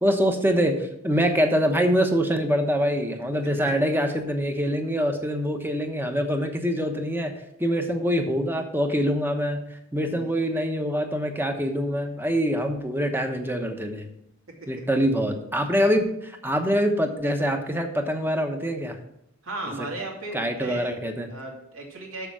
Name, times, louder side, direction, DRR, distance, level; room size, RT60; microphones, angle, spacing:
voice 1, 0.0-7.3 7.6-14.1 14.7-19.0 19.8-19.9 20.3-21.3, equal, 10° right, 5 dB, 1.0 m, -24 dB
voice 2, 10.1-10.4 19.4-20.9 21.3-22.3, right 2 dB, 80° right, 0 dB, 2.4 m, -36 dB
6.9 x 6.7 x 6.1 m, 0.75 s
head